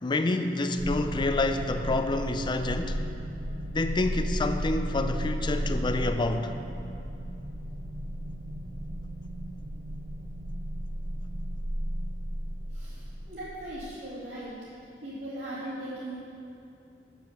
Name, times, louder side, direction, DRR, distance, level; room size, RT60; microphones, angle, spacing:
voice 1, 0.0-3.0 3.7-6.5, left 2 dB, 25° left, 0.4 m, -28 dB
sound 1, 0.8-14.1, equal, 90° right, 0.8 m, -34 dB
voice 2, 12.7-14.5 15.0-16.2, right 1 dB, 70° right, 2.5 m, -38 dB
7.6 x 7.0 x 6.6 m
head